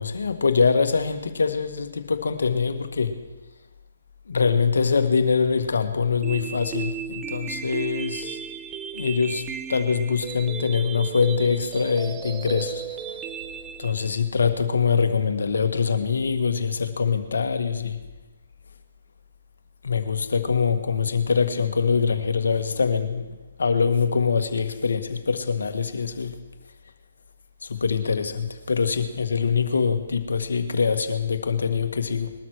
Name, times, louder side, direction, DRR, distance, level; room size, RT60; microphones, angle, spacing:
voice 1, 0.0-3.2 4.3-8.4 8.9-13.3 13.8-18.0 19.8-23.2 23.6-26.4 27.6-32.3, left 5 dB, 75° left, 7 dB, 1.6 m, -24 dB
sound 1, 6.2-14.2, right 8 dB, 15° right, 0.6 m, -35 dB
21.0 x 12.5 x 4.7 m, 1.2 s
figure-of-eight pair, 140°, 0 cm